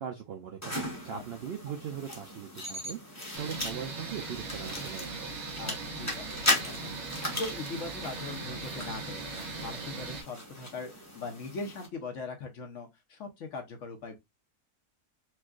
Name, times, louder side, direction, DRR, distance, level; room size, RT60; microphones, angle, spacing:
voice 1, 0.0-5.3, right 8 dB, 85° right, 0.5 m, -40 dB
sound 1, 0.6-11.9, left 1 dB, 15° left, 0.9 m, -37 dB
sound 2, 3.3-10.2, right 3 dB, 65° right, 1.2 m, -39 dB
voice 2, 5.6-9.3 9.6-14.2, left 3 dB, 60° left, 1.0 m, -40 dB
4.5 x 2.2 x 2.3 m
omnidirectional pair, 1.6 m